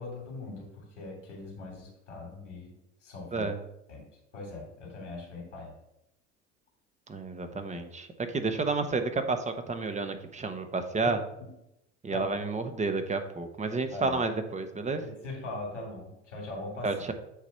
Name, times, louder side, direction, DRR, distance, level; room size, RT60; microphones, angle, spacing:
voice 1, 0.0-2.7 3.0-3.5 3.9-4.0 4.3-5.7 11.4-11.5 12.1-12.3 13.9-14.2 15.0-16.9, left 2 dB, 90° left, -1 dB, 2.7 m, -40 dB
voice 2, 3.3-3.6 7.1-8.1 8.3-11.2 12.0-15.0 16.8-17.1, right 3 dB, 20° right, 8 dB, 1.0 m, -30 dB
8.3 x 3.1 x 5.7 m, 0.85 s
hypercardioid pair, 75°, 35 cm